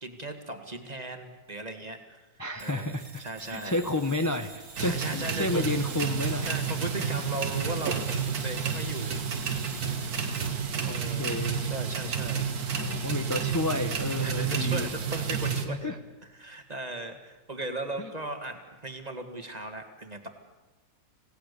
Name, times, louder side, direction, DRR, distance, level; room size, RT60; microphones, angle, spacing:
voice 1, 0.0-2.2 2.6-3.8 4.8-5.7 6.4-9.3 10.8-11.3 11.6-12.9 14.2-15.9 16.4-20.3, right 2 dB, 20° right, 6 dB, 1.9 m, -37 dB
voice 2, 2.4-3.2 3.5-6.5 10.2-10.4 10.9-11.6 12.7-14.9 15.7-16.0 18.0-18.1, left 2 dB, 20° left, 5 dB, 0.5 m, -31 dB
sound 1, 2.6-10.5, right 2 dB, 40° right, 2.4 m, -49 dB
sound 2, 4.8-15.7, right 6 dB, 55° right, 1.9 m, -30 dB
27.0 x 17.5 x 6.8 m, 1.1 s
omnidirectional pair, 2.0 m